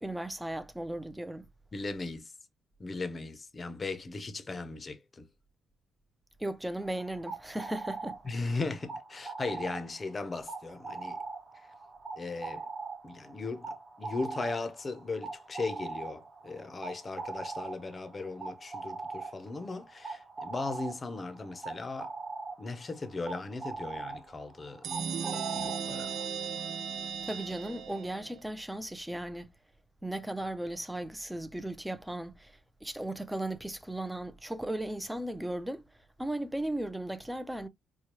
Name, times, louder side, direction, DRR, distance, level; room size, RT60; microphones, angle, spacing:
voice 1, 0.0-1.5 6.4-8.2 27.2-29.5 30.0-35.8 36.2-37.7, right 1 dB, 5° right, 0.6 m, -36 dB
voice 2, 1.7-2.3 2.8-5.3 8.2-11.2 12.2-12.6 13.0-13.7 14.0-22.1 22.6-24.8 25.5-26.1, left 3 dB, 30° left, 0.7 m, -37 dB
sound 1, 6.8-26.3, right 4 dB, 25° right, 1.1 m, -42 dB
sound 2, 24.8-28.4, right 7 dB, 65° right, 0.4 m, -36 dB
4.4 x 2.3 x 3.0 m
cardioid pair, 90°, 0 cm